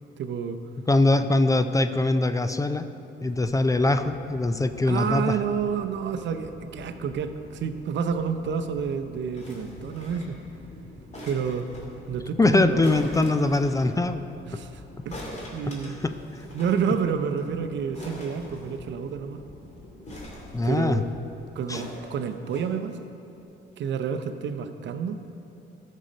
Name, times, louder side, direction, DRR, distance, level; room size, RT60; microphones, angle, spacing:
voice 1, 0.2-0.6 4.8-10.4 11.2-11.7 12.1-13.0 14.5-16.0 16.5-19.4 20.6-21.1 21.5-23.1 23.8-25.2, right 6 dB, 65° right, 9 dB, 0.7 m, -29 dB
voice 2, 0.9-2.8 3.2-5.4 12.4-14.3 16.0-16.4 20.5-21.0 21.7-21.8, left 2 dB, 15° left, 9 dB, 0.4 m, -22 dB
sound 1, 3.2-21.4, left 1 dB, 60° left, 2.6 m, -47 dB
sound 2, 9.3-10.4 11.1-11.9 12.8-13.9 15.1-16.8 17.1-17.2 17.4-17.5 17.9-19.1 20.1-21.0 21.7-22.7 23.4-23.5, left 1 dB, 35° left, 2.3 m, -42 dB
13.0 x 6.4 x 5.2 m, 2.8 s
cardioid pair, 90°, 20 cm